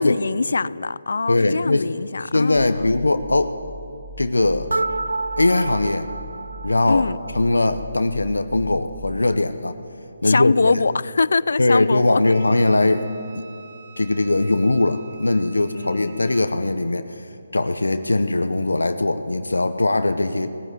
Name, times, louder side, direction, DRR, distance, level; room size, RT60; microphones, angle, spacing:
voice 1, 0.0-3.0 6.9-7.2 10.2-12.2 15.7-16.3, left 4 dB, 70° left, 21 dB, 0.4 m, -23 dB
voice 2, 1.3-1.9 2.3-3.6 4.2-4.7 5.4-6.1 6.6-7.0 7.3-9.8 10.2-10.7 11.6-13.1 13.3-13.5 14.0-17.3 17.5-20.5, left 2 dB, 85° left, 9 dB, 0.9 m, -20 dB
sound 1, 3.1-9.4, right 1 dB, 25° left, 1.2 m, -41 dB
sound 2, 4.7-7.6, right 2 dB, 80° right, 0.5 m, -29 dB
Wind instrument woodwind instrument, 12.2-16.5, right 6 dB, 35° right, 1.4 m, -47 dB
18.5 x 15.0 x 9.5 m, 2.8 s
figure-of-eight pair, 150°, 0 cm